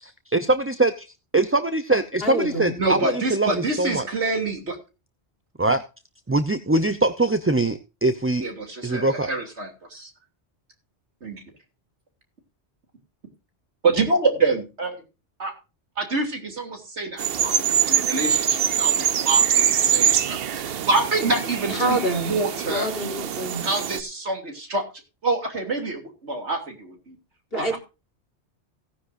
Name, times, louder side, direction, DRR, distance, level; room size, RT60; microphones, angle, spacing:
voice 1, 0.0-1.1 1.3-4.0 5.6-5.8 6.3-8.4 8.8-9.3, right 2 dB, 15° right, 0.5 m, -22 dB
voice 2, 2.2-2.7 21.7-22.3 22.6-23.6 27.5-27.8, right 1 dB, 55° left, 3.9 m, -26 dB
voice 3, 2.8-4.8 8.4-10.1 11.2-11.4 13.8-15.0 15.4-15.5 16.0-20.6 20.9-22.9 23.6-24.8 25.2-27.2 27.6-27.8, right 3 dB, 80° right, 3.4 m, -26 dB
sound 1, 17.2-24.0, right 8 dB, 60° right, 0.9 m, -23 dB
17.5 x 10.0 x 2.6 m
omnidirectional pair, 1.1 m